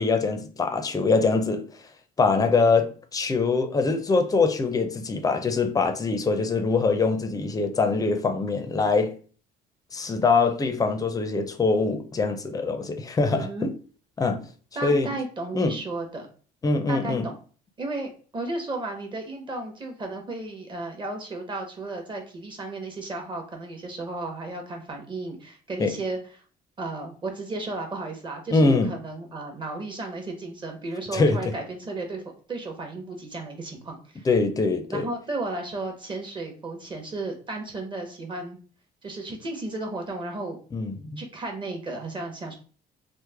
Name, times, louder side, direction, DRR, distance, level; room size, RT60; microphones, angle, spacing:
voice 1, 0.0-1.7 2.2-9.1 9.9-13.7 14.2-14.4 14.8-15.1 15.5-15.8 16.6-17.3 25.8-25.9 28.5-28.9 31.1-31.6 34.2-35.1 40.7-41.2, left 4 dB, 20° left, 0.4 m, -23 dB
voice 2, 13.3-13.7 14.8-16.3 16.9-17.4 17.8-26.2 26.8-32.2 32.5-34.3 34.9-38.6 39.0-40.6 41.2-42.5, right 2 dB, 30° right, 0.9 m, -34 dB
3.1 x 2.0 x 3.3 m
cardioid pair, 110°, 17 cm